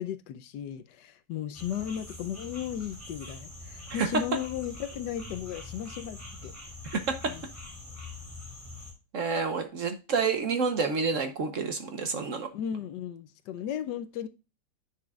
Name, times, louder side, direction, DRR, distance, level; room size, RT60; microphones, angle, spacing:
voice 1, 0.0-6.6 7.3-7.4 12.5-14.3, left 9 dB, 75° left, 1.2 m, -35 dB
sound 1, 1.5-8.9, left 2 dB, 10° right, 3.8 m, -44 dB
voice 2, 6.9-7.3 9.1-12.5, right 5 dB, 55° right, 1.1 m, -29 dB
10.0 x 5.9 x 2.3 m
omnidirectional pair, 1.9 m